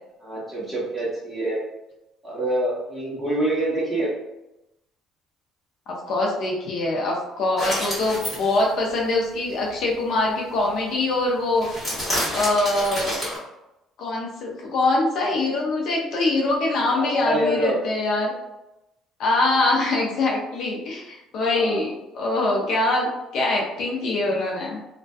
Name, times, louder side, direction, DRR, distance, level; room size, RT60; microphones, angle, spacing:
voice 1, 0.2-1.6 2.2-4.1 16.9-17.8 21.4-21.8, right 1 dB, 5° right, -8 dB, 1.0 m, -26 dB
voice 2, 5.9-11.7 12.3-13.0 14.0-18.3 19.2-24.8, left 2 dB, 60° left, -2 dB, 0.5 m, -23 dB
sound 1, 7.6-8.7 11.6-13.4, equal, 15° left, 1.2 m, -28 dB
2.5 x 2.2 x 2.2 m, 0.93 s
cardioid pair, 125°, 0 cm